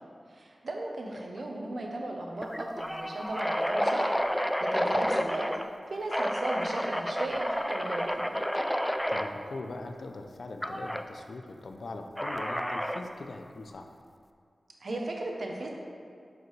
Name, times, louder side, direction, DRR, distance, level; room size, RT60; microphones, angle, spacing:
voice 1, 0.3-4.1 4.6-5.5 5.9-8.3 14.8-15.7, right 2 dB, 70° right, 0 dB, 0.9 m, -36 dB
sound 1, 1.2-1.4 1.7-1.8 2.4-5.7 6.1-9.3 10.6-11.0 12.2-13.1, equal, 5° left, 0.4 m, -30 dB
voice 2, 9.1-13.9, left 2 dB, 80° left, 5 dB, 0.5 m, -41 dB
7.9 x 5.0 x 3.3 m, 2.2 s
wide cardioid pair, 60°, 0 cm